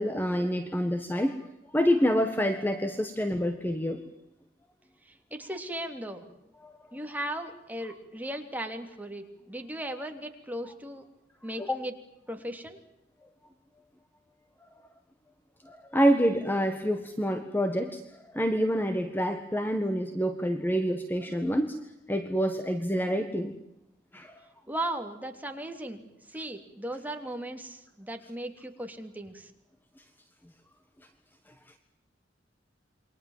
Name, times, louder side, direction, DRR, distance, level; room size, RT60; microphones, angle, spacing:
voice 1, 0.0-1.4 1.7-4.1 6.6-6.7 11.6-11.8 15.6-18.0 18.3-21.8 22.1-23.5 24.1-24.4, equal, 10° left, 7 dB, 1.6 m, -27 dB
voice 2, 5.0-6.3 6.9-11.0 11.4-11.9 12.3-12.8 24.7-29.5, right 1 dB, 10° right, 4 dB, 3.2 m, -37 dB
28.5 x 24.0 x 7.5 m, 0.85 s
head